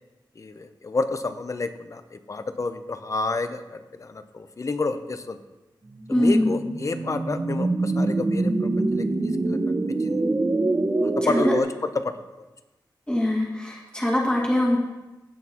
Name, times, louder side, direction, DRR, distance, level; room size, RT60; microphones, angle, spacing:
voice 1, 0.4-5.4 6.1-9.6 10.0-10.2 11.0-12.4, left 3 dB, 40° left, 10 dB, 0.6 m, -30 dB
voice 2, 6.1-6.6 11.2-11.5 13.1-14.8, left 1 dB, 10° left, -3 dB, 1.8 m, -23 dB
sound 1, 6.1-11.6, right 2 dB, 30° right, 0.6 m, -25 dB
16.5 x 6.1 x 2.9 m, 1.1 s
wide cardioid pair, 110°, 8 cm